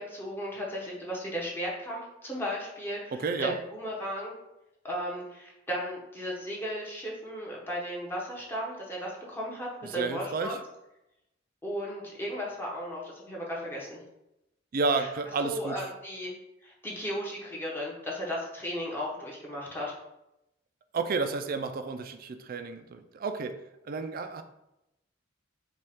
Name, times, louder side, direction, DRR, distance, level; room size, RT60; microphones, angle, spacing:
voice 1, 0.0-4.3 4.8-10.6 11.6-14.0 15.0-15.1 15.4-16.3 16.6-19.9, equal, 10° left, -4 dB, 1.0 m, -35 dB
voice 2, 3.1-3.5 9.8-10.6 14.7-15.8 20.9-24.4, right 4 dB, 50° right, 8 dB, 0.4 m, -31 dB
5.2 x 2.4 x 3.5 m, 0.87 s
head